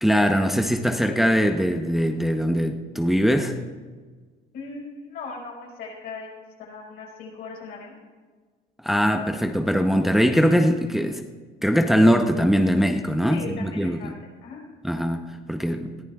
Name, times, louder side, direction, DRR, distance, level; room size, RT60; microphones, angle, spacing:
voice 1, 0.0-3.6 8.8-11.2 11.6-14.1 14.8-15.9, equal, ahead, 4 dB, 0.7 m, -21 dB
voice 2, 4.5-7.9 13.3-14.1 14.4-14.6, left 4 dB, 75° left, -2 dB, 5.0 m, -38 dB
21.0 x 14.0 x 2.4 m, 1.4 s
cardioid pair, 110°, 17 cm